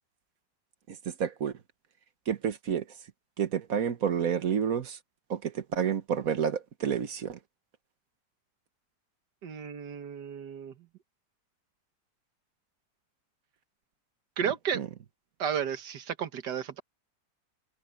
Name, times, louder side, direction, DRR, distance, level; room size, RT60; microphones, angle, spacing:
voice 1, 1.2-1.5 2.3-2.8 3.4-5.0 5.3-7.4 14.7-14.9, right 8 dB, 60° right, 1.5 m, -29 dB
voice 2, 9.4-10.7 14.4-14.8 15.4-16.8, right 8 dB, 80° right, 1.9 m, -33 dB
omnidirectional pair, 1.8 m